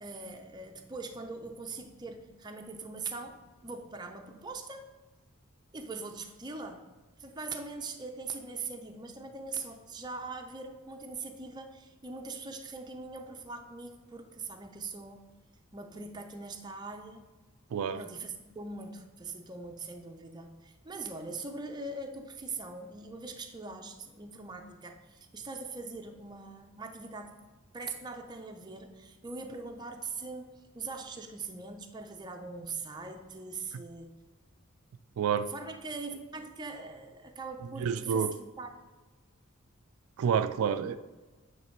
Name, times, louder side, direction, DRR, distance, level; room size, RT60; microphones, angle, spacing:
voice 1, 0.0-4.9 5.7-6.8 7.2-15.3 15.7-17.3 18.0-27.4 27.7-34.1 35.5-38.7, right 3 dB, 20° right, 4 dB, 0.5 m, -41 dB
voice 2, 17.7-18.0 35.2-35.5 37.8-38.4 40.2-41.0, right 7 dB, 80° right, 12 dB, 0.3 m, -28 dB
8.9 x 3.2 x 4.5 m, 1.3 s
head